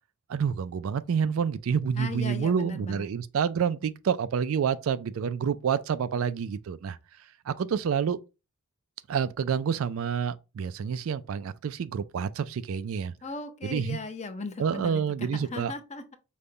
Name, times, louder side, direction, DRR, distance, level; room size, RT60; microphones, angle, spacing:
voice 1, 0.3-7.0 7.5-8.2 9.1-13.1 13.6-14.0 14.6-15.7, right 7 dB, 65° right, 0.3 m, -28 dB
voice 2, 1.9-3.1 13.2-15.0 15.3-16.2, left 3 dB, 30° left, 0.6 m, -37 dB
5.3 x 2.2 x 3.8 m
head